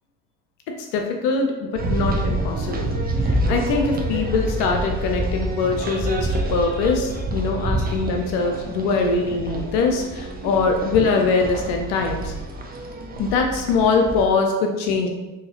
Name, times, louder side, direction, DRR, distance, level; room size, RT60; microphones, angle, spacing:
voice 1, 0.8-12.3 13.2-15.1, left 4 dB, 70° left, 3 dB, 0.6 m, -22 dB
sound 1, 1.8-14.2, right 1 dB, 20° right, 0.6 m, -27 dB
3.8 x 2.7 x 2.9 m, 1.1 s
hypercardioid pair, 55°, 41 cm